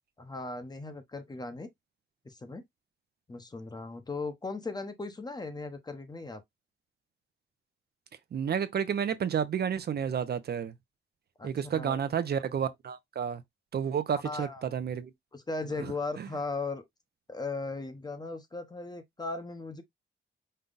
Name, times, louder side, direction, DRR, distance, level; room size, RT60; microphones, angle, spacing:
voice 1, 0.2-1.7 2.2-2.6 3.3-6.4 11.4-12.0 14.2-14.7 15.3-16.8 17.3-19.8, left 3 dB, 20° left, 0.9 m, -37 dB
voice 2, 8.3-10.7 11.4-13.4 13.7-15.1 16.2-16.3, right 8 dB, 55° right, 0.6 m, -31 dB
5.5 x 2.3 x 3.9 m
cardioid pair, 115°, 20 cm